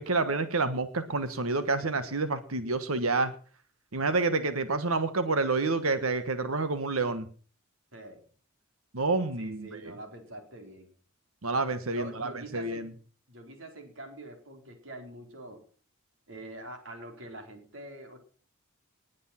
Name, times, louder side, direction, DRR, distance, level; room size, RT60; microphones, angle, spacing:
voice 1, 0.0-3.3 3.9-7.3 8.9-9.7 11.4-12.8, right 3 dB, 85° right, 10 dB, 1.4 m, -28 dB
voice 2, 7.9-8.2 9.4-10.9 11.8-12.9 13.3-15.6 16.3-18.2, right 1 dB, 65° right, 4 dB, 4.4 m, -44 dB
20.0 x 8.4 x 5.8 m, 0.42 s
head